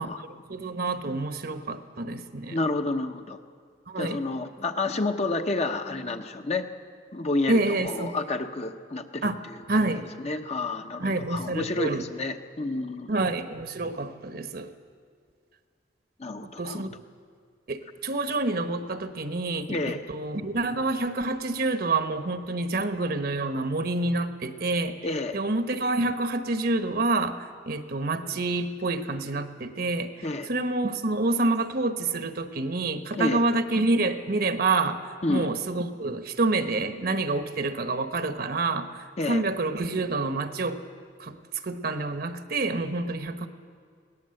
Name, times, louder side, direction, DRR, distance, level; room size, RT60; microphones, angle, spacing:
voice 1, 0.0-2.6 3.9-4.2 7.5-8.1 9.2-9.4 9.7-10.1 11.0-12.0 13.1-14.7 16.4-16.9 17.7-25.0 25.3-40.8 41.2-41.4 41.6-43.5, right 2 dB, 55° right, 9 dB, 1.1 m, -28 dB
voice 2, 2.5-3.4 4.0-6.7 7.1-9.8 10.2-13.2 16.2-16.8 19.7-20.0 25.0-25.4 30.2-30.5 33.2-33.4 35.2-35.5 39.2-39.4, left 2 dB, 35° left, 6 dB, 1.0 m, -30 dB
21.0 x 18.5 x 7.8 m, 2.1 s
head